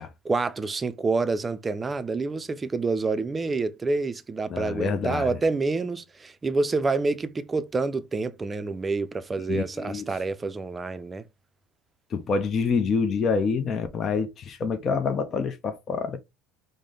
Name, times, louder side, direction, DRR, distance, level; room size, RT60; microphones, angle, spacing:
voice 1, 0.2-11.2, right 3 dB, 25° right, 0.5 m, -27 dB
voice 2, 4.5-5.4 9.5-10.1 12.1-16.2, left 5 dB, 45° left, 0.6 m, -27 dB
4.9 x 2.1 x 3.7 m
hypercardioid pair, 75°, 0 cm